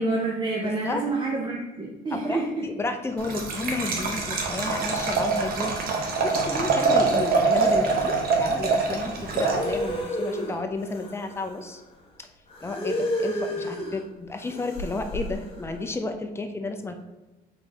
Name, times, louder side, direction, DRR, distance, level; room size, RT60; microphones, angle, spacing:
voice 1, 0.0-2.7, right 2 dB, 30° right, -1 dB, 0.6 m, -28 dB
voice 2, 0.6-1.0 2.1-11.8 12.2-12.3 12.6-17.0, left 3 dB, 15° left, 6 dB, 0.5 m, -32 dB
Liquid, 3.2-10.0, right 4 dB, 65° right, 0.9 m, -24 dB
sound 1, 9.0-11.7 12.5-14.0 14.4-15.7, equal, 35° left, 1.2 m, -31 dB
4.0 x 3.9 x 3.4 m, 1.1 s
cardioid pair, 110°, 17 cm